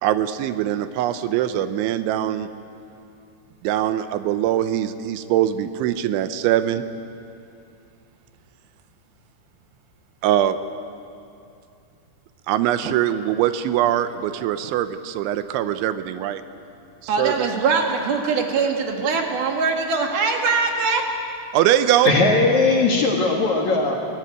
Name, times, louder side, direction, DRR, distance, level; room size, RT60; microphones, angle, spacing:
voice 1, 0.0-2.5 3.6-6.8 10.2-10.6 12.5-16.4 17.0-17.5 21.5-22.1, right 12 dB, 85° right, 11 dB, 3.2 m, -22 dB
voice 2, 17.1-21.0, right 4 dB, 60° right, 2 dB, 3.3 m, -22 dB
voice 3, 22.0-24.0, left 3 dB, 50° left, -1 dB, 2.5 m, -18 dB
24.0 x 17.0 x 9.3 m, 2.5 s
omnidirectional pair, 5.3 m